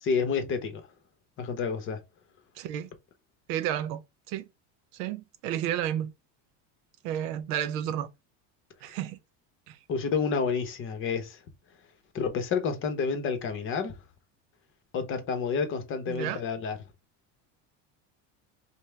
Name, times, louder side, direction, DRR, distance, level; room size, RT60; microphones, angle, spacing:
voice 1, 0.0-0.8 1.4-2.0 9.9-11.4 12.1-14.0 14.9-16.8, left 5 dB, 30° left, 0.8 m, -29 dB
voice 2, 2.6-2.9 3.5-4.0 4.3-4.5 4.9-6.1 7.0-8.1 8.8-9.2 9.7-9.8 16.1-16.4, right 11 dB, 85° right, 0.8 m, -31 dB
5.3 x 2.2 x 3.2 m
cardioid pair, 170°, 38 cm